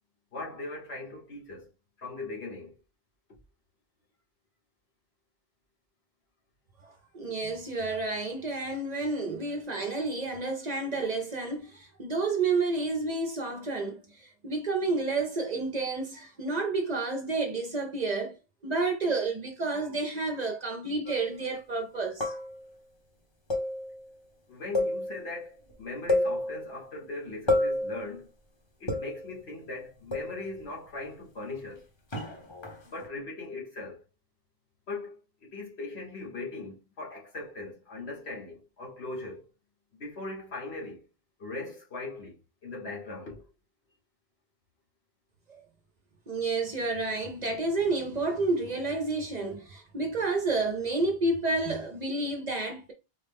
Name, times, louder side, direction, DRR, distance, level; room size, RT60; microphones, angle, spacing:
voice 1, 0.3-1.7 2.0-2.7 24.5-28.3 28.8-31.9 32.8-34.0 34.9-39.5 40.0-41.0 41.4-42.4 42.6-43.4, left 2 dB, 80° left, 1.5 m, -39 dB
voice 2, 7.1-18.4 18.6-22.4 45.5-45.6 46.3-52.9, right 3 dB, 50° right, 0.6 m, -30 dB
sound 1, 21.1-21.4 22.2-22.7 23.5-24.1 24.7-25.4 25.7-25.8 26.1-26.9 27.5-28.1 28.9-29.4 30.1-30.6 32.1-33.1, left 1 dB, 30° left, 0.7 m, -30 dB
4.0 x 2.1 x 3.4 m
omnidirectional pair, 1.1 m